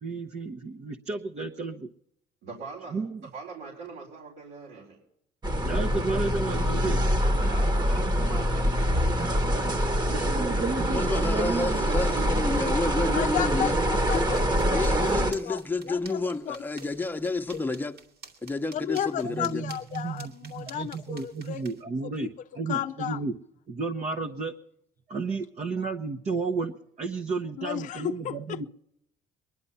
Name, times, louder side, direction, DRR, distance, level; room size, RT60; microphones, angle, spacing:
voice 1, 0.0-1.9 2.9-3.2 5.6-7.0 10.1-11.8 19.2-22.3 22.6-23.3 23.7-24.5 25.1-28.6, right 4 dB, 40° right, 1.0 m, -32 dB
voice 2, 2.4-3.0 3.3-5.0 7.4-11.5, right 4 dB, 85° right, 4.3 m, -43 dB
sound 1, 5.4-15.3, equal, 25° right, 1.4 m, -25 dB
voice 3, 10.9-13.8 14.1-14.3 14.7-18.0 18.4-19.6, left 3 dB, 10° left, 1.0 m, -30 dB
voice 4, 13.1-15.0 15.4-16.6 18.7-21.6 22.0-22.3 22.7-23.2 27.6-28.6, left 11 dB, 50° left, 0.5 m, -33 dB
sound 2, 14.3-21.8, right 5 dB, 65° right, 2.6 m, -51 dB
21.0 x 11.0 x 5.6 m
cardioid pair, 110°, 17 cm